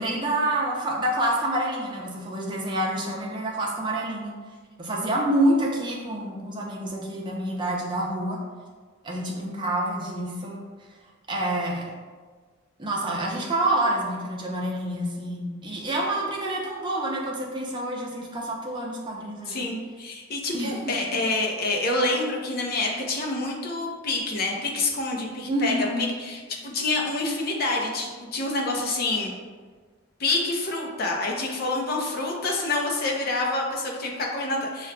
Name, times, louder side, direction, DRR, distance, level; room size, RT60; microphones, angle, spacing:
voice 1, 0.0-4.3 4.8-8.4 9.0-10.6 11.3-11.9 12.8-19.7 20.5-20.9 25.5-26.0, right 1 dB, 20° right, -2 dB, 0.6 m, -27 dB
voice 2, 19.5-29.3 30.2-34.9, left 2 dB, 45° left, 0 dB, 0.6 m, -27 dB
6.1 x 2.3 x 2.2 m, 1.5 s
head